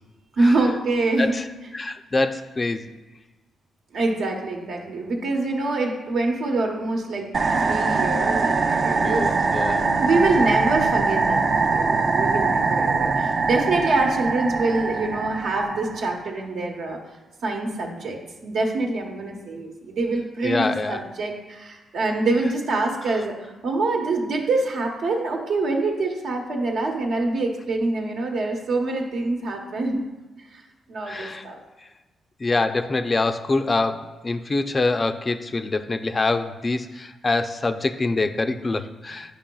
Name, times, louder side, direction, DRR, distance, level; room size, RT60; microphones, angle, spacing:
voice 1, 0.4-1.3 3.9-7.3 7.7-9.3 9.8-17.0 17.4-30.0 30.5-30.6 30.9-31.6, right 2 dB, 75° right, 1 dB, 1.0 m, -25 dB
voice 2, 1.7-2.9 9.0-9.9 20.4-21.0 31.1-31.4 32.4-39.3, left 3 dB, 30° left, 8 dB, 0.4 m, -25 dB
sound 1, 7.3-16.2, right 4 dB, 50° right, 0.5 m, -22 dB
8.7 x 5.1 x 2.3 m, 1.2 s
cardioid pair, 85°, 0 cm